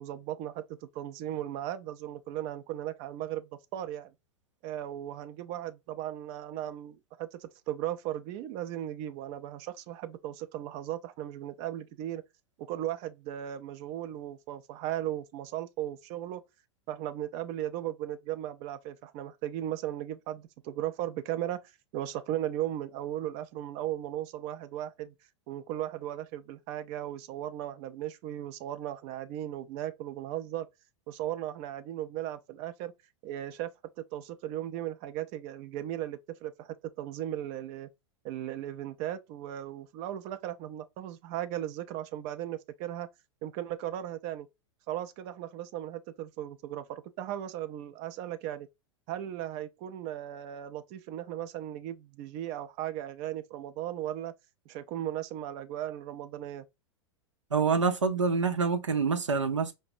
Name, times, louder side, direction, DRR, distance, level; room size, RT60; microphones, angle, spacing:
voice 1, 0.0-4.1 4.6-12.2 12.6-16.4 16.9-25.1 25.5-30.7 31.1-32.9 33.2-33.7 34.0-37.9 38.2-43.1 43.4-44.5 44.9-48.7 49.1-54.3 54.7-56.7, right 12 dB, 45° right, 0.5 m, -37 dB
voice 2, 57.5-59.7, right 5 dB, 85° right, 0.6 m, -26 dB
4.8 x 2.1 x 2.5 m
figure-of-eight pair, 95°, 15 cm